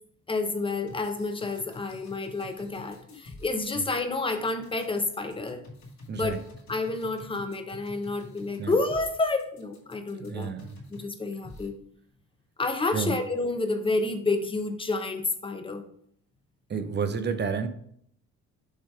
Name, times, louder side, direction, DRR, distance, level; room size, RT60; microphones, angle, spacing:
voice 1, 0.3-5.6 6.1-6.4 6.7-10.5 10.9-11.8 12.6-15.9, left 3 dB, 15° left, 6 dB, 0.8 m, -29 dB
sound 1, 0.7-11.1 11.4-11.7, left 2 dB, 65° left, 2.1 m, -48 dB
voice 2, 10.2-10.8 12.9-13.2 16.7-17.7, right 5 dB, 35° right, 10 dB, 0.7 m, -30 dB
6.5 x 3.2 x 4.7 m, 0.66 s
cardioid pair, 90°, 30 cm